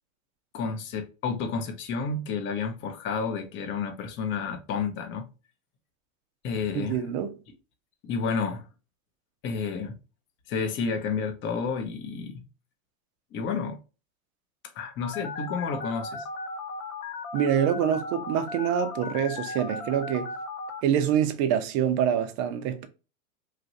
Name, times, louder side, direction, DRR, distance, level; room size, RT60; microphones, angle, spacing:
voice 1, 0.5-5.3 6.4-7.1 8.0-8.7 9.4-10.0 10.5-12.4 13.3-13.8 14.7-16.3, left 5 dB, 30° left, 0.6 m, -30 dB
voice 2, 6.7-7.3 17.3-20.3 20.8-22.9, right 9 dB, 35° right, 0.5 m, -25 dB
Telephone, 15.0-20.8, left 3 dB, 75° left, 0.7 m, -36 dB
3.0 x 2.4 x 2.7 m
hypercardioid pair, 120°, 42 cm